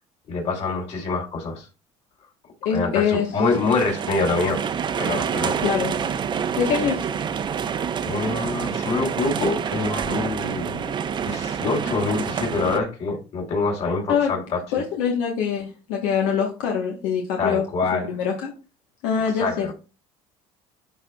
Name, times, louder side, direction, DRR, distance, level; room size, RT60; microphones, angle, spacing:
voice 1, 0.3-1.7 2.7-4.6 5.0-5.6 8.1-10.9 11.2-14.6 17.4-18.2 19.4-19.7, left 3 dB, 50° left, 1 dB, 3.2 m, -25 dB
voice 2, 2.6-3.3 5.6-5.9 6.6-7.1 14.1-14.3 14.7-17.6 17.9-18.5 19.0-19.7, left 7 dB, 85° left, 1 dB, 1.2 m, -24 dB
sound 1, 3.4-12.8, right 7 dB, 35° right, 0.7 m, -27 dB
11.5 x 4.3 x 2.3 m, 0.33 s
supercardioid pair, 110°, 13 cm